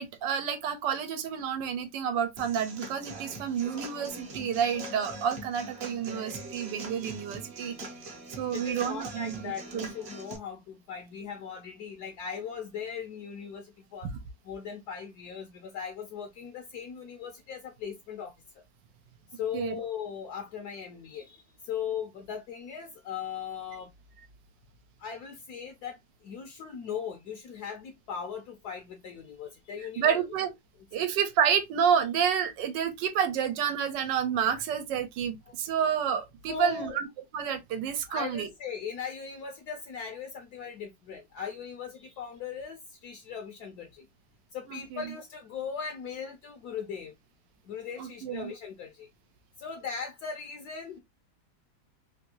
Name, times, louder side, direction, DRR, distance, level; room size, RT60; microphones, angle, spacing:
voice 1, 0.0-7.7 8.4-9.9 19.5-19.8 30.0-30.5 30.9-37.1 37.3-38.5 44.7-45.0 48.0-48.5, right 8 dB, 85° right, 1.3 m, -29 dB
Human voice / Acoustic guitar / Drum, 2.4-10.4, right 2 dB, 50° right, 0.8 m, -42 dB
voice 2, 8.2-14.1 14.4-18.6 19.3-23.9 25.0-30.2 36.5-37.0 38.1-44.0 44.5-47.1 47.6-49.1 49.6-51.0, left 7 dB, 70° left, 1.1 m, -39 dB
3.4 x 2.7 x 2.7 m
omnidirectional pair, 1.9 m